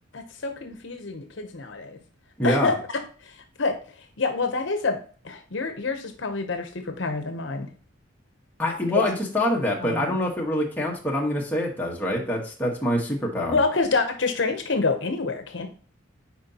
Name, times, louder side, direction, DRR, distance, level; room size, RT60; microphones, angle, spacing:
voice 1, 0.1-2.0 2.4-3.7 4.2-5.0 5.2-7.7 8.9-9.0 9.8-10.2 13.5-15.7, left 3 dB, 65° left, 6 dB, 0.8 m, -27 dB
voice 2, 2.4-2.7 8.6-13.6, left 1 dB, 10° left, -2 dB, 1.3 m, -25 dB
9.3 x 4.5 x 2.8 m, 0.41 s
head